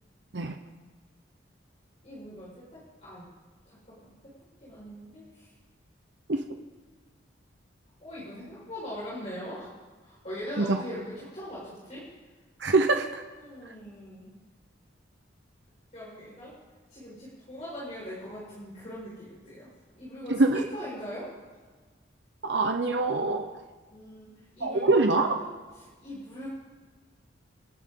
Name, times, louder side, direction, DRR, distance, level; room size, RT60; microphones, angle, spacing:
voice 1, 2.0-3.2 3.7-4.3 4.6-5.5 8.0-9.7 10.0-12.0 13.4-14.4 15.9-16.6 16.9-19.7 19.9-21.3 23.9-25.5 25.7-26.5, equal, 35° left, -8 dB, 5.3 m, -41 dB
voice 2, 12.6-13.2 20.3-20.6 22.4-23.5 24.6-25.4, right 3 dB, 65° right, 5 dB, 1.0 m, -24 dB
28.0 x 11.0 x 3.9 m, 1.4 s
head